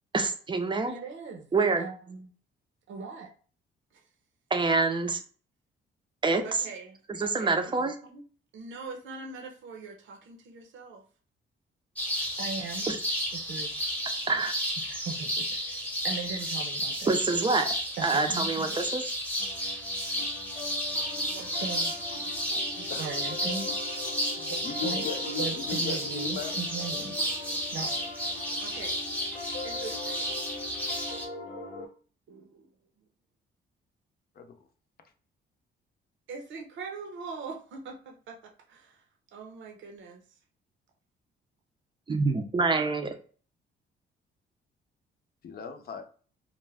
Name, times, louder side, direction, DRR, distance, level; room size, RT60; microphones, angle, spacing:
voice 1, 0.1-0.9 1.5-1.9 4.5-5.2 6.2-6.7 7.1-7.9 14.3-14.5 17.1-17.7 18.0-19.0 42.1-43.1, right 3 dB, 25° right, 6 dB, 0.5 m, -26 dB
voice 2, 0.9-1.5 1.8-2.3 2.9-3.3 6.4-8.2 8.5-11.0 12.4-12.9 13.3-13.7 14.8-15.6 16.0-17.1 18.0-18.8 21.3-22.3 22.7-23.7 24.4-25.0 25.4-27.2 27.7-28.0 28.6-29.0 29.6-30.3 32.3-32.7 36.3-38.4 38.7-39.0 39.3-40.2, right 5 dB, 70° right, 2 dB, 0.8 m, -40 dB
sound 1, 12.0-31.3, equal, 5° left, 0.9 m, -32 dB
Piano, 19.4-31.8, left 3 dB, 85° left, 0.8 m, -42 dB
voice 3, 22.9-23.3 24.2-24.3 24.6-26.6 34.4-34.6 45.4-46.1, left 5 dB, 50° left, 7 dB, 0.6 m, -37 dB
2.4 x 2.1 x 3.3 m, 0.41 s
cardioid pair, 90°, 20 cm